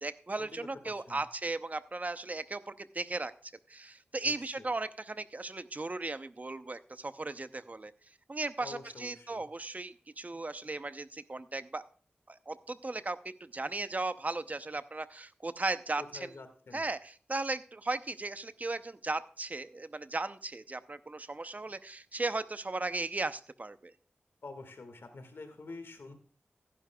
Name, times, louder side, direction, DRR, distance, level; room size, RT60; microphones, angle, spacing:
voice 1, 0.0-7.9 8.3-11.8 12.3-16.3 16.7-23.9, right 2 dB, 40° right, 12 dB, 0.7 m, -36 dB
voice 2, 0.8-1.2 4.2-4.7 8.6-9.5 16.0-16.8 24.4-26.1, left 3 dB, 75° left, 7 dB, 1.8 m, -47 dB
16.0 x 9.9 x 2.3 m, 0.42 s
cardioid pair, 45°, 4 cm